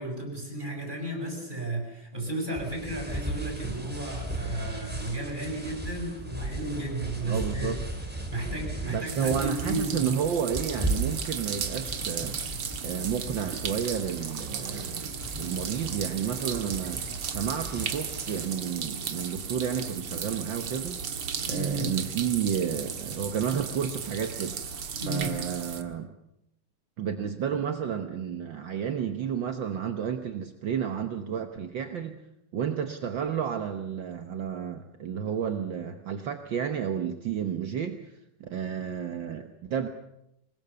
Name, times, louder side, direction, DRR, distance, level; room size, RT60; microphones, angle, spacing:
voice 1, 0.0-7.8 8.3-10.2 21.5-21.9 25.0-25.3, right 2 dB, 20° right, 2 dB, 6.9 m, -33 dB
sound 1, 2.5-18.5, right 1 dB, 5° right, 5.1 m, -37 dB
voice 2, 7.2-7.8 8.9-12.4 12.8-15.1 15.4-21.0 21.4-24.6 25.1-26.1 27.0-32.2 32.5-38.1 38.4-39.9, right 8 dB, 60° right, 6 dB, 1.8 m, -31 dB
sound 2, 9.1-25.8, right 6 dB, 80° right, 2.6 m, -35 dB
26.0 x 21.0 x 7.0 m, 0.85 s
omnidirectional pair, 2.4 m